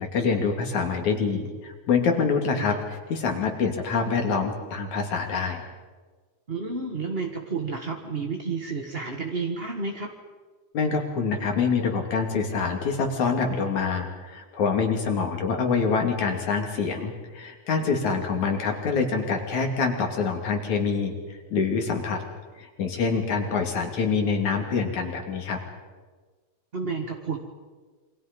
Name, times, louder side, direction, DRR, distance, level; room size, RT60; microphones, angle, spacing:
voice 1, 0.0-5.6 10.7-21.1 21.5-22.2 22.6-25.6, left 5 dB, 60° left, 3 dB, 3.9 m, -26 dB
voice 2, 6.5-10.1 18.1-18.2 26.7-27.4, right 4 dB, 40° right, 2 dB, 0.8 m, -31 dB
28.0 x 25.0 x 5.3 m, 1.4 s
omnidirectional pair, 3.9 m